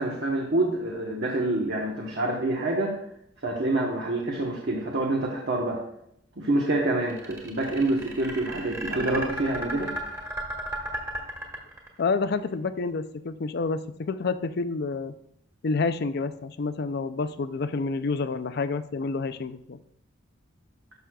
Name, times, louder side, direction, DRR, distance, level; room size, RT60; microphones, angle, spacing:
voice 1, 0.0-3.0 3.4-5.8 6.4-9.9, right 2 dB, 60° right, -1 dB, 1.1 m, -27 dB
sound 1, 7.1-12.1, right 1 dB, 15° right, 1.6 m, -34 dB
voice 2, 12.0-15.1 15.6-19.8, left 4 dB, 55° left, 12 dB, 0.4 m, -28 dB
12.5 x 6.2 x 2.3 m, 0.75 s
head